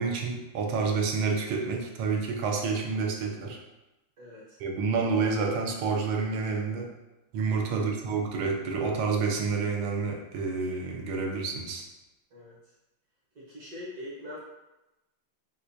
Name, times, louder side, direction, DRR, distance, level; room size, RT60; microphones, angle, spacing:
voice 1, 0.0-3.6 4.6-6.9 7.3-11.8, right 4 dB, 80° right, 2 dB, 1.5 m, -29 dB
voice 2, 4.2-4.6 7.7-7.9 12.3-12.7 13.3-14.4, left 1 dB, 55° right, -7 dB, 1.3 m, -43 dB
4.3 x 2.4 x 2.5 m, 1.0 s
omnidirectional pair, 2.4 m